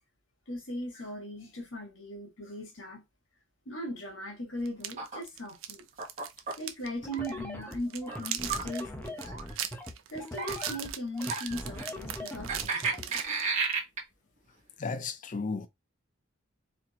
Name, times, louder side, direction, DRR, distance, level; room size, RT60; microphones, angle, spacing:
voice 1, 0.5-3.0 3.7-5.8 6.6-9.2 10.1-13.2, equal, 70° left, 1.8 m, -38 dB
sound 1, 4.7-6.9 7.1-7.3 7.7-13.8, right 10 dB, 85° right, 0.6 m, -39 dB
sound 2, 5.0-5.2 6.0-6.5 7.0-7.4 8.1-8.7 9.2-9.5 10.4-10.9 11.3-11.9 12.5-14.0, right 4 dB, 35° right, 1.4 m, -33 dB
sound 3, 7.0-13.0, left 1 dB, 10° left, 0.7 m, -41 dB
voice 2, 14.8-15.7, left 4 dB, 40° left, 0.5 m, -34 dB
4.1 x 2.9 x 2.9 m
head